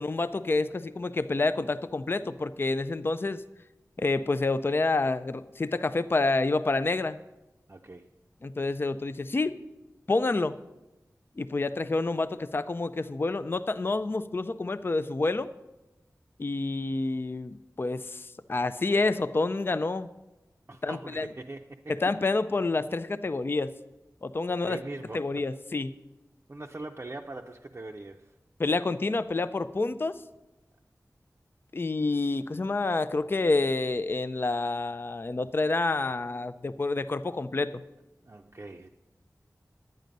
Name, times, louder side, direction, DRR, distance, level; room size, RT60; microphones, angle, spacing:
voice 1, 0.0-3.4 4.0-7.2 8.4-9.6 10.1-10.6 11.4-15.5 16.4-20.1 20.8-21.3 21.9-23.7 24.2-24.8 25.1-25.9 28.6-30.2 31.7-37.8, left 3 dB, 35° left, 12 dB, 0.4 m, -28 dB
voice 2, 7.7-8.1 20.7-22.0 24.5-25.4 26.5-28.3 38.2-38.9, right 2 dB, 40° right, 1 dB, 0.5 m, -41 dB
10.5 x 9.2 x 5.2 m, 1.0 s
wide cardioid pair, 70°, 6 cm